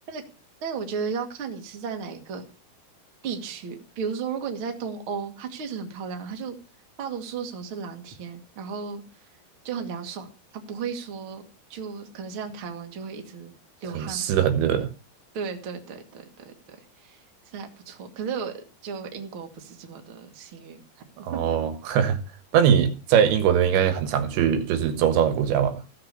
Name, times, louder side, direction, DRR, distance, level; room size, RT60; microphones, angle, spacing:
voice 1, 0.6-2.4 3.2-6.6 7.0-9.2 9.6-11.4 11.7-13.5 13.8-14.3 15.3-21.0 21.3-21.4, right 6 dB, 40° right, 2.0 m, -35 dB
voice 2, 13.9-14.9 21.2-22.2 22.5-25.8, right 8 dB, 80° right, 3.6 m, -21 dB
16.0 x 6.7 x 6.7 m
omnidirectional pair, 5.3 m